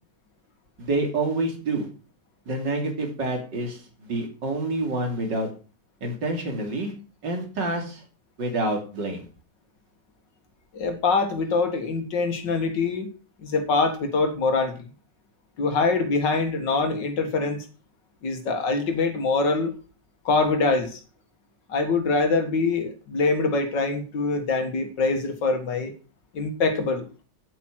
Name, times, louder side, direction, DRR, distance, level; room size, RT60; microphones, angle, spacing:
voice 1, 0.8-1.9 2.5-5.5 6.0-6.9 7.2-8.0 8.4-9.2, right 2 dB, 80° right, 3 dB, 3.6 m, -27 dB
voice 2, 10.7-13.1 13.4-14.8 15.6-17.7 18.2-19.7 20.3-21.0 21.7-25.9 26.3-27.0, left 3 dB, 80° left, 7 dB, 2.4 m, -24 dB
10.0 x 8.3 x 6.2 m, 0.36 s
omnidirectional pair, 1.9 m